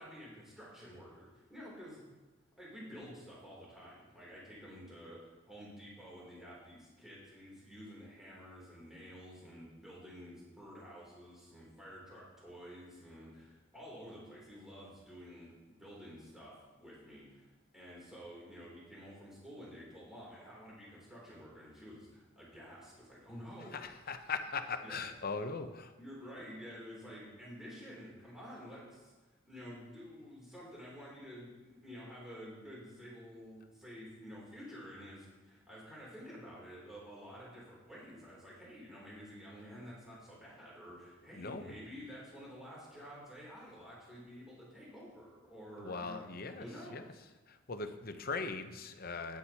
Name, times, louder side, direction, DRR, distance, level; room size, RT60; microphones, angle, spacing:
voice 1, 0.0-2.0 2.6-23.8 24.0-24.2 24.8-25.0 26.0-46.3 46.6-47.0, equal, ahead, -7 dB, 3.0 m, -50 dB
voice 2, 23.7-25.9 41.3-41.8 45.8-47.1 47.5-49.4, left 4 dB, 50° left, 8 dB, 0.7 m, -40 dB
12.5 x 9.6 x 2.9 m, 1.2 s
head